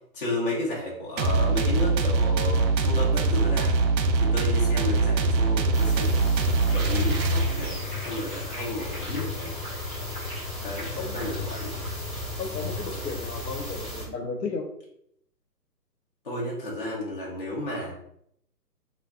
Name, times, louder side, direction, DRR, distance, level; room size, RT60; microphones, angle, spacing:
voice 1, 0.1-3.8 4.2-6.2 6.7-9.6 10.6-11.7 16.2-17.9, left 1 dB, 35° left, -5 dB, 0.5 m, -32 dB
sound 1, 1.2-7.9, right 3 dB, 90° right, 0.6 m, -23 dB
sound 2, 5.7-14.1, left 1 dB, ahead, 0.8 m, -37 dB
sound 3, 6.7-13.8, left 3 dB, 30° right, 0.7 m, -38 dB
voice 2, 11.0-11.4 12.4-14.7, left 4 dB, 75° left, 5 dB, 0.7 m, -34 dB
2.2 x 2.2 x 3.4 m, 0.72 s
hypercardioid pair, 165°, 50 cm